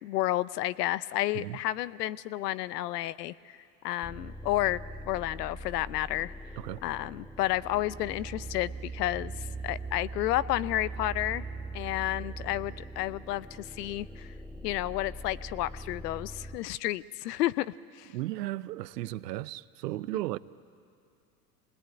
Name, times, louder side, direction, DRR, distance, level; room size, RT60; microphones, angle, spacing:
voice 1, 0.0-3.6 3.8-4.8 5.1-6.3 6.8-9.3 9.6-11.5 11.7-14.3 14.6-18.1, left 15 dB, 80° left, 0.7 m, -31 dB
sound 1, 4.0-16.6, right 2 dB, 5° right, 0.6 m, -41 dB
voice 2, 18.1-20.4, right 16 dB, 85° right, 0.7 m, -35 dB
25.0 x 20.0 x 8.9 m
hypercardioid pair, 95°, 47 cm